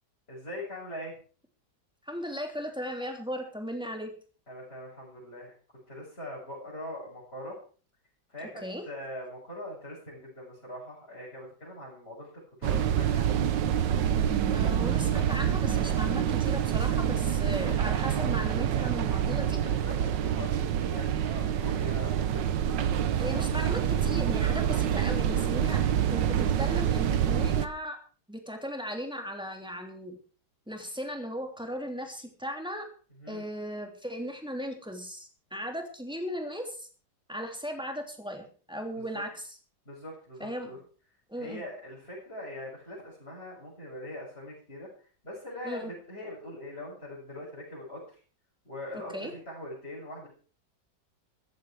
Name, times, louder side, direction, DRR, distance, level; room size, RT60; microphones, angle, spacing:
voice 1, 0.3-1.1 4.5-5.5 5.9-7.6 8.3-12.3 12.6-13.4 19.3-22.4 25.9-26.1 33.2-33.4 38.9-39.2 39.9-40.8 41.4-44.9 45.2-48.0 48.7-50.3, left 1 dB, 35° left, -6 dB, 7.4 m, -42 dB
voice 2, 2.1-4.1 8.4-8.8 14.5-19.6 23.2-28.0 28.3-30.2 30.7-32.9 33.3-36.9 37.3-39.6 40.4-40.8 41.3-41.6 45.6-45.9 48.9-49.3, equal, 5° right, 3 dB, 3.0 m, -37 dB
sound 1, 12.6-27.7, right 9 dB, 85° right, 1.6 m, -27 dB
15.0 x 14.0 x 4.8 m, 0.41 s
omnidirectional pair, 1.9 m